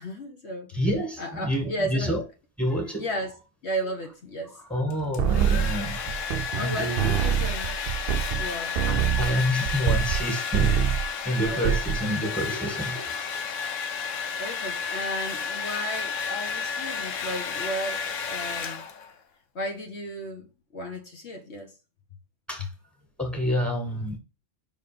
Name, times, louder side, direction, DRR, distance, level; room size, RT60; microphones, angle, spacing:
voice 1, 0.0-2.2 3.0-3.3 3.6-4.6 6.5-7.7 8.3-8.8 11.4-11.8 14.4-18.8 19.5-20.5 20.7-21.7 22.6-22.7, equal, 60° left, 1.4 m, -34 dB
voice 2, 0.7-2.2 2.6-3.1 4.6-7.2 8.9-10.8 11.2-13.4 22.5-22.7 23.2-24.2, equal, ahead, 2.0 m, -28 dB
Domestic sounds home sounds, 4.9-19.2, left 6 dB, 90° left, 1.3 m, -32 dB
sound 1, 5.2-6.7 7.0-10.3 10.5-11.1 11.4-12.0, right 9 dB, 60° right, 0.6 m, -25 dB
5.6 x 4.2 x 5.1 m
omnidirectional pair, 1.3 m